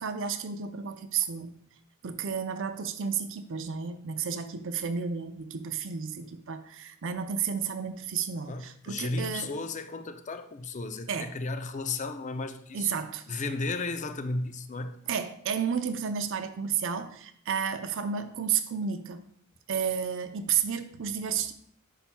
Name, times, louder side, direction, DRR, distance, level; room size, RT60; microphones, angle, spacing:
voice 1, 0.0-1.6 2.0-9.5 11.1-11.4 12.7-13.4 15.1-19.2 19.7-21.5, right 7 dB, 60° right, 0.6 m, -32 dB
voice 2, 8.5-12.9 13.3-14.9, left 3 dB, 35° left, 0.5 m, -34 dB
9.9 x 5.8 x 2.3 m
head